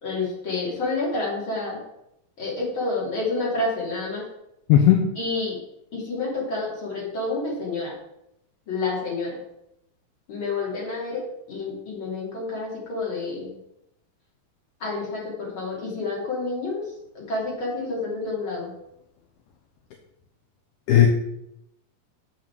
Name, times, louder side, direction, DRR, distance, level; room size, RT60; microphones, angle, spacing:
voice 1, 0.0-1.8 2.4-4.2 5.2-5.6 5.9-7.9 8.7-9.4 10.3-13.5 14.8-16.8 17.2-18.7, left 3 dB, 35° left, -4 dB, 3.7 m, -29 dB
voice 2, 4.7-5.1 20.9-21.1, left 11 dB, 75° left, 3 dB, 2.2 m, -15 dB
7.5 x 5.6 x 7.6 m, 0.81 s
omnidirectional pair, 4.0 m